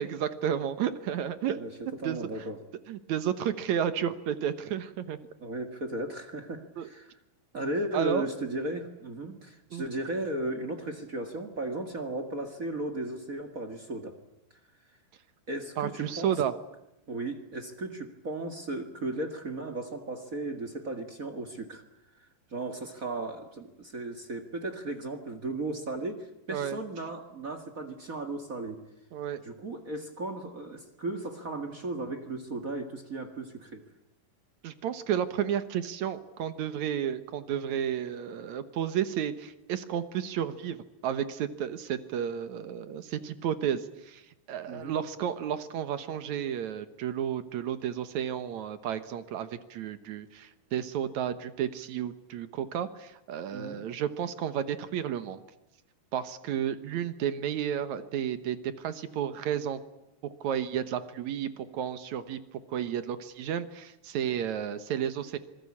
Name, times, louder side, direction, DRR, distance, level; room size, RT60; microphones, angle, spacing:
voice 1, 0.0-1.6 2.0-2.2 2.9-5.2 6.8-6.9 7.9-8.3 9.7-9.8 15.8-16.5 26.5-26.8 29.1-29.4 34.6-40.8 41.0-44.2 44.5-55.4 56.1-59.8 60.2-62.4 62.7-65.4, right 9 dB, 65° right, 12 dB, 2.0 m, -32 dB
voice 2, 2.0-2.6 5.4-7.1 7.5-14.1 15.5-16.4 17.1-21.8 22.2-28.8 29.4-33.8 44.7-45.0 53.5-53.8, right 2 dB, 45° right, 6 dB, 1.0 m, -36 dB
26.0 x 21.0 x 8.6 m, 0.90 s
omnidirectional pair, 4.5 m